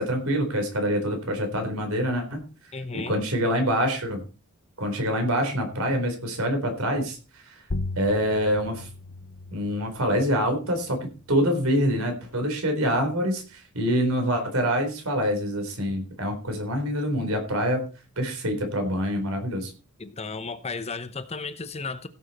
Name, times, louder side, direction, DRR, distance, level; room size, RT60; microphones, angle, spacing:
voice 1, 0.0-2.4 2.9-4.2 4.8-7.6 8.0-8.9 9.5-17.9 18.2-19.7, equal, 70° right, 4.1 m, -26 dB
voice 2, 2.7-3.2 20.0-22.1, left 4 dB, 30° left, 0.9 m, -34 dB
sound 1, 7.7-12.8, left 2 dB, 65° left, 1.0 m, -38 dB
16.5 x 7.5 x 4.3 m
head